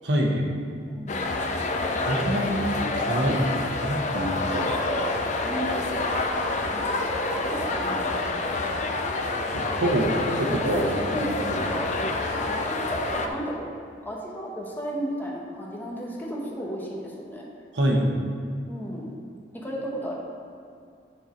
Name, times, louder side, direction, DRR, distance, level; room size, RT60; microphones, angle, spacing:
voice 1, 0.0-0.5 2.0-2.6 2.9-3.5 3.8-4.7 9.5-10.9 11.2-11.7 17.7-18.1, equal, 85° right, 0 dB, 1.1 m, -25 dB
voice 2, 0.8-1.2 2.5-2.6 4.5-5.2 5.4-6.3 6.7-9.1 10.7-11.9 12.3-13.6 14.0-17.5 18.6-19.1 19.5-20.1, equal, 10° left, -4 dB, 1.2 m, -34 dB
sound 1, 1.1-13.3, left 2 dB, 40° left, 0.6 m, -28 dB
9.0 x 4.4 x 5.2 m, 2.4 s
head